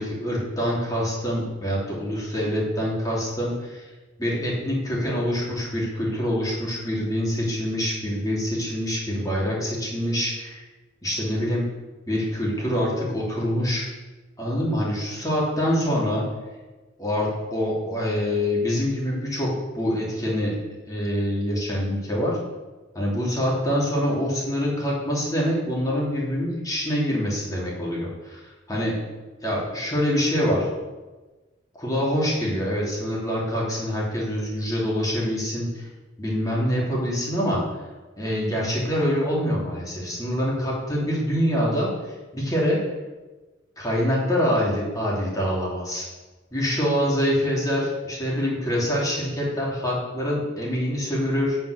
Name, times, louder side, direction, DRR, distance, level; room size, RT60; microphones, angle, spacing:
voice 1, 0.0-3.8 4.2-10.6 11.0-11.7 12.1-13.9 14.4-16.2 17.0-20.6 20.9-22.3 22.9-28.4 28.7-29.0 29.4-30.7 31.8-35.8 36.2-37.6 38.2-41.9 42.3-42.8 43.8-46.0 46.5-51.6, equal, 20° left, -5 dB, 3.0 m, -25 dB
9.0 x 5.7 x 6.6 m, 1.2 s
head